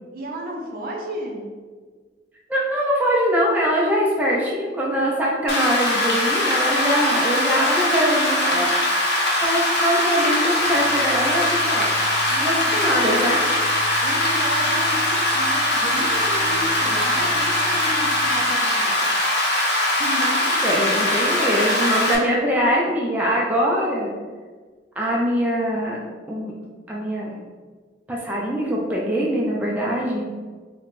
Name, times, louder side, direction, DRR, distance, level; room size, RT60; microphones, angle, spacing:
voice 1, 0.1-1.5 12.3-13.5 14.0-19.1 20.0-20.8 22.1-22.2, right 1 dB, 50° right, 0 dB, 0.6 m, -32 dB
voice 2, 2.5-8.7 9.4-11.9 12.4-13.4 20.6-24.1 25.0-26.0 26.3-26.5 26.9-27.3 28.1-30.3, equal, 10° right, -4 dB, 0.4 m, -22 dB
Rain, 5.5-22.1, left 1 dB, 65° left, 0.7 m, -21 dB
sound 1, 6.8-18.4, equal, 25° left, 0.8 m, -40 dB
4.1 x 2.1 x 3.1 m, 1.4 s
head